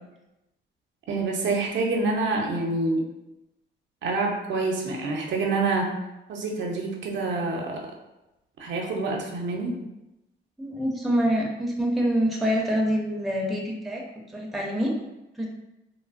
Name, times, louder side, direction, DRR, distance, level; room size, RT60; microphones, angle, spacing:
voice 1, 1.1-3.0 4.0-5.9 6.3-7.9 8.6-9.8, right 3 dB, 70° right, 0 dB, 0.6 m, -27 dB
voice 2, 10.6-14.0 14.3-14.9 15.4-15.5, equal, ahead, -2 dB, 0.6 m, -25 dB
3.1 x 2.1 x 2.4 m, 0.94 s
cardioid pair, 90°, 20 cm